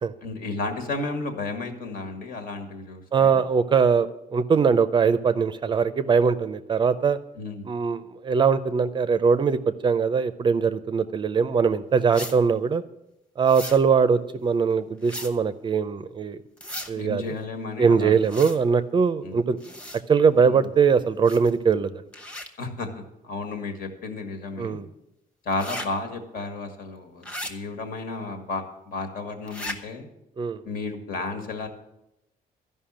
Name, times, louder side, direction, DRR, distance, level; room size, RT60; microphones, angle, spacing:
voice 1, 0.2-3.4 7.4-7.7 16.9-18.2 19.2-19.4 20.5-20.7 22.6-24.8 25.5-30.1 30.7-31.7, left 3 dB, 70° left, 5 dB, 1.8 m, -33 dB
voice 2, 3.1-7.2 7.6-12.8 13.4-16.4 16.9-17.2 17.8-19.6 20.1-22.0 24.6-24.9 30.4-30.6, right 5 dB, 30° right, 13 dB, 0.5 m, -21 dB
sound 1, 12.1-12.4 13.5-13.8 15.0-15.3 16.6-16.9 18.2-18.6 19.6-20.0 21.2-21.6 22.1-22.5 25.5-25.9 27.2-27.5 29.5-29.8, left 1 dB, 10° left, 1.0 m, -36 dB
13.0 x 5.5 x 8.7 m, 0.87 s
cardioid pair, 170°, 15 cm